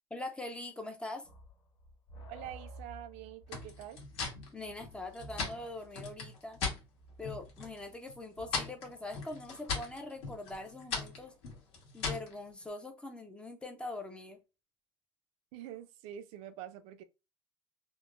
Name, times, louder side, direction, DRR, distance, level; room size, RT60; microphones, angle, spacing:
voice 1, 0.1-1.3 4.5-6.6 7.2-11.3 11.9-14.4, left 2 dB, 10° left, 0.4 m, -43 dB
sound 1, 1.2-9.4, right 1 dB, 35° left, 0.9 m, -53 dB
voice 2, 2.3-4.0 15.5-17.0, right 11 dB, 70° right, 0.4 m, -46 dB
sound 2, 3.5-6.8 7.2-7.8 8.1-12.3, left 4 dB, 55° left, 1.2 m, -39 dB
3.6 x 2.0 x 2.4 m
cardioid pair, 165°, 12 cm